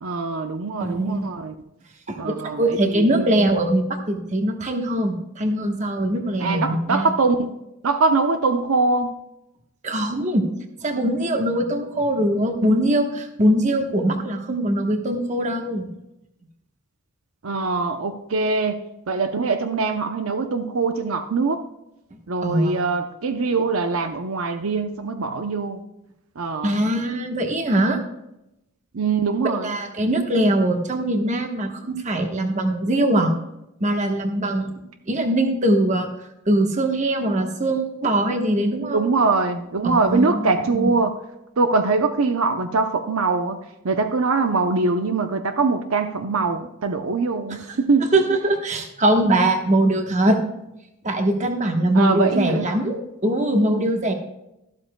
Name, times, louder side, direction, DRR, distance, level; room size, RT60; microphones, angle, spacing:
voice 1, 0.0-1.5 2.2-3.3 6.4-7.5 7.8-9.1 17.4-21.6 22.3-25.8 26.4-26.7 28.9-29.8 38.9-41.2 41.6-43.6 43.8-48.1 51.9-52.7, right 4 dB, 75° right, 7 dB, 0.6 m, -22 dB
voice 2, 0.8-1.2 2.1-7.1 9.8-10.4 10.8-15.9 22.4-22.8 26.6-28.0 29.4-33.3 33.8-34.8 35.1-36.1 36.5-39.0 39.8-40.9 47.5-47.6 48.1-50.4 51.0-54.1, right 1 dB, 35° right, 4 dB, 1.1 m, -22 dB
13.0 x 12.5 x 2.2 m, 0.88 s
head